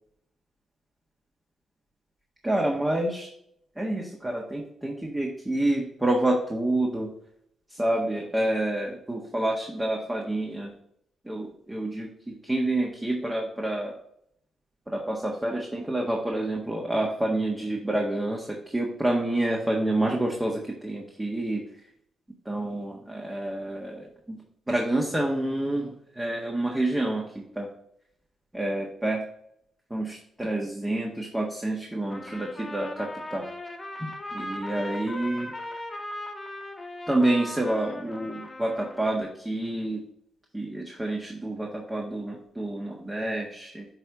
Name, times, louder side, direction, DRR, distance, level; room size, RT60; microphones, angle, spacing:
voice 1, 2.4-3.3 3.8-7.1 7.7-10.7 11.2-13.9 14.9-21.6 22.4-24.4 24.7-27.7 28.5-29.2 29.9-33.4 34.3-35.5 37.1-40.0 40.5-43.9, right 1 dB, 15° right, -1 dB, 1.4 m, -28 dB
Trumpet, 32.1-39.2, left 1 dB, 25° left, 1.3 m, -38 dB
9.0 x 3.4 x 3.8 m, 0.72 s
supercardioid pair, 50°, 0 cm